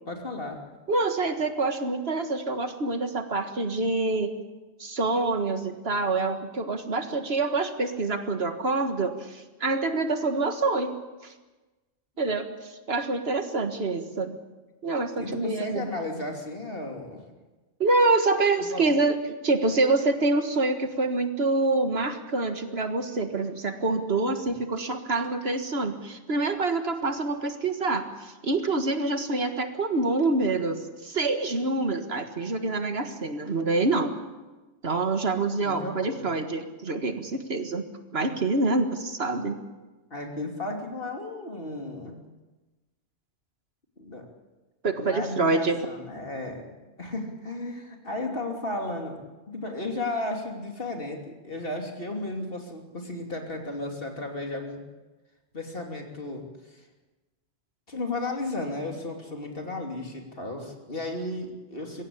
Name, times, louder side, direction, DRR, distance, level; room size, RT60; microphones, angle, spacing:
voice 1, 0.1-0.6 15.2-17.2 18.6-18.9 35.6-36.3 38.2-38.3 40.1-42.1 44.0-44.3 45.0-46.7 47.0-49.2 49.5-54.8 55.5-56.9 57.9-62.0, left 2 dB, 55° left, 2 dB, 3.3 m, -34 dB
voice 2, 0.9-4.3 4.8-11.0 11.2-11.3 12.2-14.4 14.8-15.9 17.8-19.2 19.4-34.1 34.8-37.8 38.1-39.6 44.8-45.8, right 3 dB, 65° right, 7 dB, 1.9 m, -26 dB
22.5 x 16.5 x 8.8 m, 1.2 s
omnidirectional pair, 1.1 m